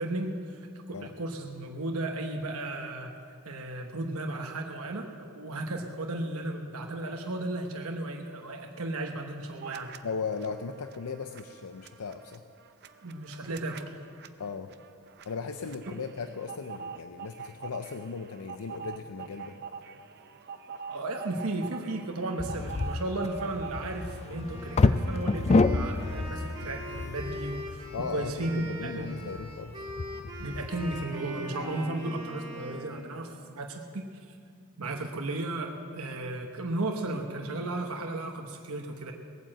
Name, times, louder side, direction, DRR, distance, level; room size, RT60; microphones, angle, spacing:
voice 1, 0.0-3.1 3.4-9.9 13.0-14.0 20.9-29.1 30.4-34.4 34.8-39.1, right 2 dB, 75° right, 2 dB, 1.1 m, -34 dB
sound 1, 9.6-10.0 10.3-24.3, right 6 dB, 45° right, 0.6 m, -45 dB
voice 2, 10.0-12.4 14.4-14.7 15.3-19.6 27.9-29.8, left 5 dB, 85° left, 8 dB, 0.6 m, -37 dB
sound 2, 22.4-31.0, left 3 dB, 30° left, 0.3 m, -29 dB
Wind instrument woodwind instrument, 24.3-33.1, equal, 20° right, 4.0 m, -42 dB
18.5 x 8.9 x 7.7 m, 2.3 s
head